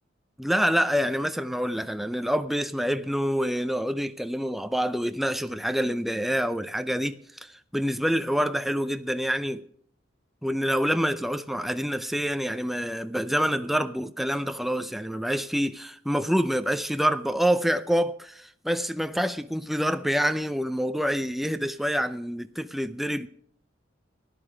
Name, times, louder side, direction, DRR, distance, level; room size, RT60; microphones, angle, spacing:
voice 1, 0.4-9.6 10.4-23.3, equal, ahead, 0.5 m, -27 dB
14.0 x 11.0 x 5.0 m
head